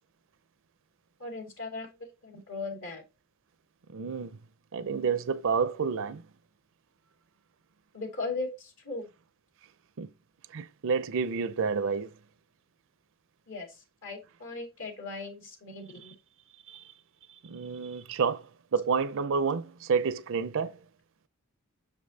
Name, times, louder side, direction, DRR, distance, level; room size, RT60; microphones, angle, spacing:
voice 1, 1.2-3.0 7.9-9.1 13.5-16.1, left 3 dB, 65° left, 2.5 m, -38 dB
voice 2, 3.9-4.4 4.7-6.3 10.0-10.1 10.5-12.1 16.7-16.8 17.4-20.8, right 5 dB, 65° right, 0.5 m, -29 dB
6.7 x 5.3 x 2.8 m
head